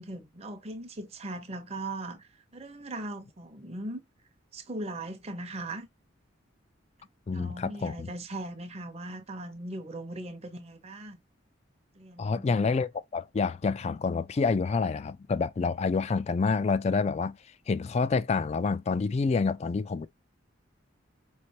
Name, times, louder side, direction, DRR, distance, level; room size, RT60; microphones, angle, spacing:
voice 1, 0.0-4.0 4.5-5.9 7.3-11.2 12.0-12.5, right 2 dB, 30° right, 0.8 m, -39 dB
voice 2, 7.3-8.1 12.2-17.4 17.7-20.1, left 4 dB, 35° left, 0.3 m, -28 dB
5.0 x 3.2 x 2.8 m
head